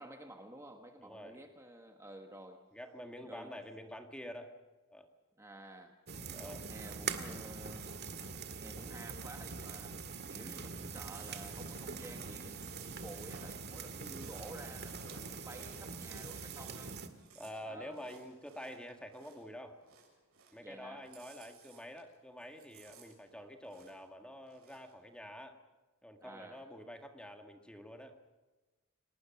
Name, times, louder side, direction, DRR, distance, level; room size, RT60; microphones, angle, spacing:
voice 1, 0.0-2.6 3.2-3.6 5.4-6.0 6.4-10.0 10.3-16.9 17.7-18.0 20.6-21.1 26.2-26.6, right 1 dB, 15° right, 4 dB, 1.4 m, -52 dB
voice 2, 1.0-1.4 2.7-4.5 4.9-5.1 6.3-6.6 8.8-8.9 9.9-10.1 14.0-14.2 17.3-19.8 20.5-25.6 26.0-28.2, equal, 5° left, 4 dB, 1.8 m, -48 dB
sound 1, 6.1-17.1, right 5 dB, 50° right, 2.0 m, -43 dB
Chewing mastication, 11.0-19.5 19.8-20.7 21.0-22.1 22.4-24.1 24.4-24.9, right 5 dB, 85° right, 7.4 m, -57 dB
30.0 x 18.5 x 6.0 m, 1.2 s
head